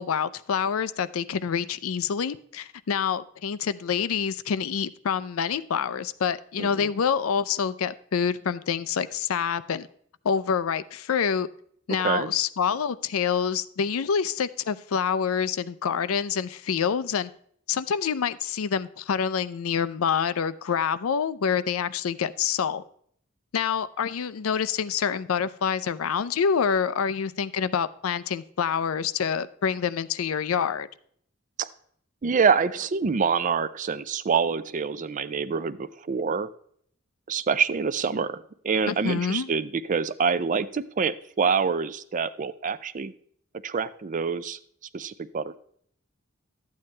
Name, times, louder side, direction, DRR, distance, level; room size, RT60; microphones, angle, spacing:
voice 1, 0.0-9.9 10.2-11.5 11.9-17.3 17.7-22.8 23.5-30.9 38.9-39.5, left 7 dB, 80° left, 0.5 m, -27 dB
voice 2, 6.6-6.9 12.0-12.3 31.6-31.7 32.2-36.5 37.3-38.4 38.6-43.1 43.6-44.6 44.9-45.6, right 5 dB, 40° right, 0.4 m, -26 dB
12.5 x 8.5 x 3.2 m
head